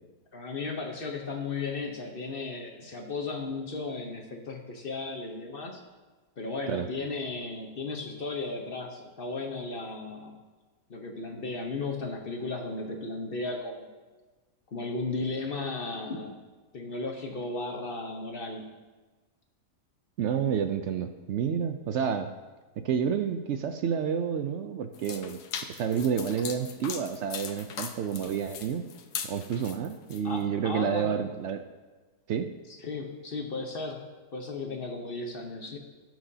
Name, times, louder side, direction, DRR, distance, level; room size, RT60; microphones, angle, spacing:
voice 1, 0.3-5.8 6.4-10.4 10.9-14.0 14.7-16.4 16.7-18.7 30.2-31.2 32.8-35.8, left 3 dB, 45° left, 2 dB, 0.9 m, -35 dB
voice 2, 20.2-22.3 22.8-25.4 25.7-28.9 29.2-31.6 32.3-32.5, right 7 dB, 75° right, 8 dB, 0.6 m, -29 dB
sound 1, 24.9-30.2, left 7 dB, 80° left, 1.2 m, -39 dB
18.0 x 6.1 x 2.7 m, 1.3 s
omnidirectional pair, 1.7 m